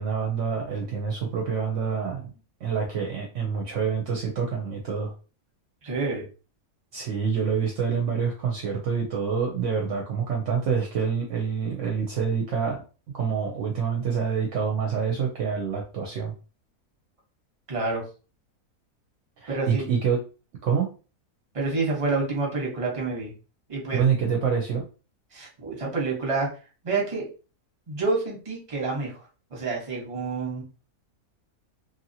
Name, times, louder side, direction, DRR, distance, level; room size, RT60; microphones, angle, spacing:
voice 1, 0.0-5.1 6.9-12.8 13.1-16.3 19.4-20.2 20.6-20.9 23.9-24.9, right 6 dB, 65° right, 0 dB, 0.9 m, -27 dB
voice 2, 5.8-6.3 17.7-18.0 19.5-19.8 21.5-23.3 23.7-24.0 25.3-26.5 26.8-27.3 27.9-29.2 29.5-30.6, right 3 dB, 25° right, -1 dB, 0.9 m, -28 dB
2.7 x 2.6 x 2.7 m, 0.35 s
omnidirectional pair, 1.5 m